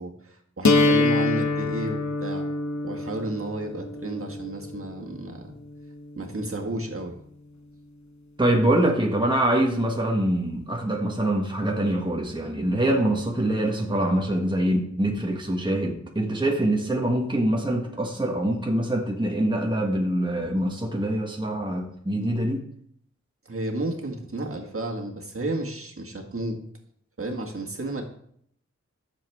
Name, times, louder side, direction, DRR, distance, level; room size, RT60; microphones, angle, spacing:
voice 1, 0.0-2.5 2.8-5.6 6.2-7.2 23.5-26.6 27.2-28.0, right 2 dB, 50° right, 1 dB, 1.8 m, -32 dB
sound 1, 0.6-6.6, left 3 dB, 70° left, 1.1 m, -26 dB
voice 2, 8.4-22.6, right 1 dB, 15° right, 0 dB, 1.4 m, -24 dB
13.5 x 7.2 x 3.6 m, 0.67 s
wide cardioid pair, 70°, 29 cm